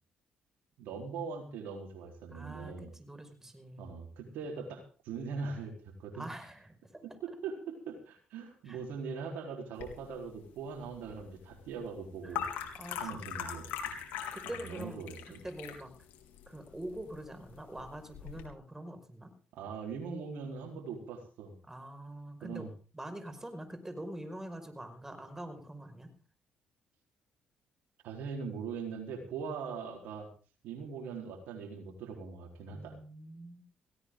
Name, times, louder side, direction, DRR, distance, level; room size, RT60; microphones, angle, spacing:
voice 1, 0.8-2.9 3.8-6.3 7.2-12.5 13.0-14.0 14.6-15.4 19.5-21.5 22.4-22.7 28.0-30.3 30.6-33.0, right 5 dB, 75° right, 2 dB, 4.2 m, -41 dB
voice 2, 2.3-3.9 6.1-7.0 8.6-8.8 12.2-12.4 12.7-13.7 14.3-15.1 15.4-15.9 16.5-19.3 21.7-22.7 22.9-26.1 32.7-33.6, right 1 dB, 15° right, 7 dB, 5.6 m, -45 dB
sound 1, 9.8-18.5, left 9 dB, 80° left, 3.8 m, -42 dB
18.0 x 16.5 x 3.9 m, 0.37 s
supercardioid pair, 55°, 3 cm